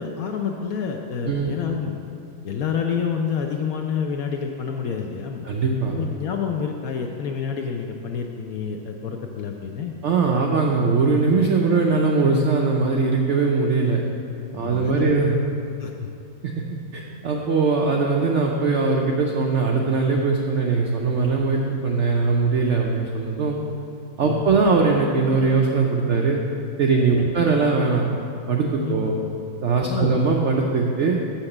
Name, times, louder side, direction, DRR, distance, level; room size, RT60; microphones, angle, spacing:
voice 1, 0.0-2.0 2.4-5.5 5.9-9.9 14.5-15.1 15.8-16.1 24.3-24.4 27.2-27.3 28.8-29.0 29.9-30.2, left 6 dB, 75° left, 2 dB, 0.8 m, -28 dB
voice 2, 5.4-5.9 10.0-14.0 14.5-15.4 16.4-16.5 16.9-23.6 24.2-26.4 26.8-28.1 28.5-29.1 29.6-31.2, right 4 dB, 80° right, 0 dB, 0.6 m, -21 dB
6.6 x 5.8 x 7.1 m, 2.6 s
omnidirectional pair, 2.0 m